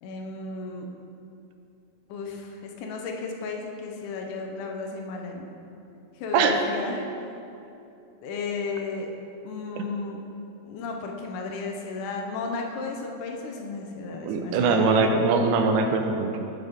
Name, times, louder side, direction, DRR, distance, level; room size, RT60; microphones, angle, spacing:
voice 1, 0.0-0.9 2.1-5.5 6.2-7.1 8.2-9.1 9.4-10.2 10.6-14.9, left 4 dB, 80° left, 1 dB, 1.8 m, -34 dB
voice 2, 14.2-16.4, right 4 dB, 90° right, 4 dB, 2.6 m, -22 dB
13.0 x 5.2 x 3.6 m, 2.7 s
omnidirectional pair, 4.4 m